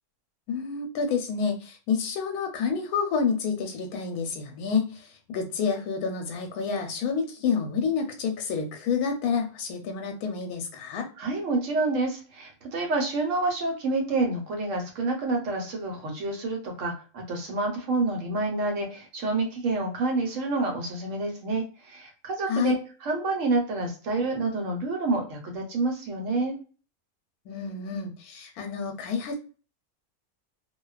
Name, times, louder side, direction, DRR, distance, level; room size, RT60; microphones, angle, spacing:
voice 1, 0.5-11.1 22.5-22.7 27.5-29.4, left 5 dB, 90° left, 4 dB, 1.1 m, -29 dB
voice 2, 11.2-26.6, right 3 dB, 65° right, 2 dB, 1.0 m, -28 dB
2.4 x 2.2 x 2.2 m, 0.36 s
omnidirectional pair, 1.5 m